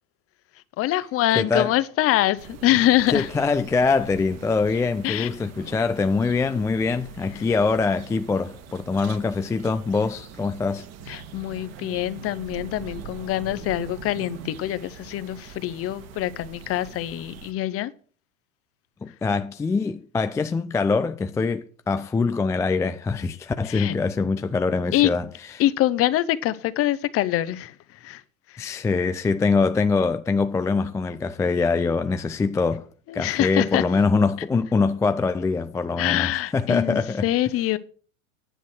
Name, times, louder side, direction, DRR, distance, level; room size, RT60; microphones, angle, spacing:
voice 1, 0.8-3.3 5.0-5.3 5.6-5.7 7.3-7.5 11.1-17.9 23.6-23.9 24.9-25.1 25.6-28.2 28.5-28.8 33.1-33.8 36.0-37.8, left 14 dB, 35° left, 0.9 m, -24 dB
voice 2, 1.4-1.7 3.1-10.9 19.0-25.3 28.6-32.9 33.1-37.3, left 4 dB, 10° left, 0.4 m, -23 dB
sound 1, 2.4-17.5, right 7 dB, 40° right, 1.7 m, -42 dB
10.0 x 8.1 x 6.1 m
hypercardioid pair, 90°, 40 cm